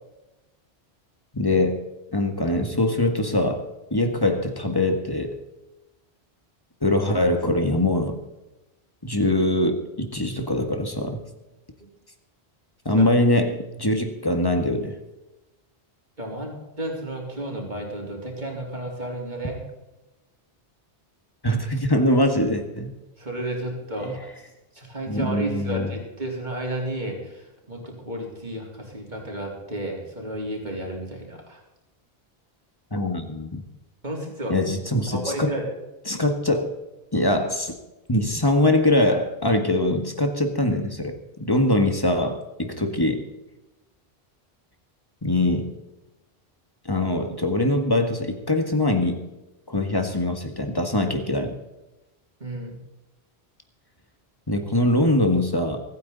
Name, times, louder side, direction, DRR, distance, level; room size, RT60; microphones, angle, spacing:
voice 1, 1.3-1.8 2.1-3.7 3.9-5.4 6.8-8.2 9.0-11.2 12.9-15.0 21.4-22.9 24.0-24.2 25.1-25.9 32.9-33.6 34.5-35.6 36.1-36.7 37.1-37.8 38.1-43.2 45.2-45.7 46.9-49.2 49.7-51.5 54.5-55.8, left 1 dB, 20° left, 6 dB, 1.8 m, -23 dB
voice 2, 16.2-19.6 23.2-24.3 24.7-31.6 34.0-34.6 35.1-35.6 49.8-49.9 52.4-52.8, right 1 dB, 45° right, 0 dB, 3.9 m, -32 dB
24.5 x 9.5 x 4.1 m, 1.0 s
omnidirectional pair, 1.1 m